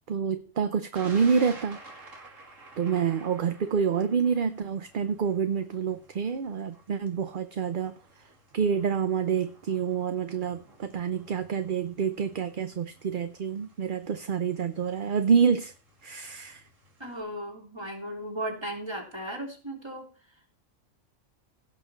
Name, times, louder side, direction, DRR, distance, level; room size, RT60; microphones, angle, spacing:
voice 1, 0.1-1.8 2.8-7.9 8.5-15.7 16.0-16.6, right 6 dB, 50° right, 10 dB, 0.8 m, -27 dB
Thunder, 1.0-17.2, right 2 dB, 85° right, 2.9 m, -52 dB
voice 2, 17.0-20.1, right 1 dB, 20° right, 0 dB, 3.4 m, -36 dB
17.0 x 6.4 x 4.4 m, 0.37 s
omnidirectional pair, 1.3 m